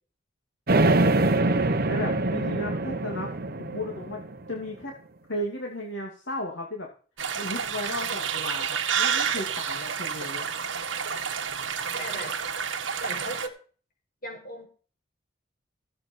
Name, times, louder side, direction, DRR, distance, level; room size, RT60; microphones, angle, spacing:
sound 1, 0.7-4.6, right 2 dB, 55° right, 1.3 m, -24 dB
voice 1, 1.2-1.6 1.9-3.3 3.6-4.2 4.5-4.9 5.3-6.9 7.3-10.5, left 1 dB, 70° left, 0 dB, 2.4 m, -35 dB
sound 2, 7.2-13.5, right 7 dB, 85° right, 1.6 m, -29 dB
voice 2, 12.0-12.4 13.0-13.6 14.2-14.7, equal, 50° left, 2 dB, 5.6 m, -37 dB
16.0 x 8.0 x 4.5 m, 0.39 s
head